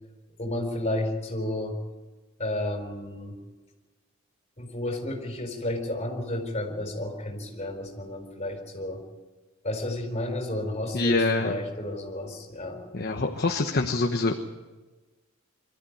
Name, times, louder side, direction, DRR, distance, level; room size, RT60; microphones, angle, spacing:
voice 1, 0.4-1.8 2.4-3.4 4.6-9.0 9.6-12.8, left 1 dB, 30° left, 4 dB, 4.4 m, -32 dB
voice 2, 10.9-11.5 12.9-14.3, left 3 dB, 50° left, 3 dB, 1.1 m, -25 dB
24.5 x 13.5 x 9.3 m, 1.2 s
head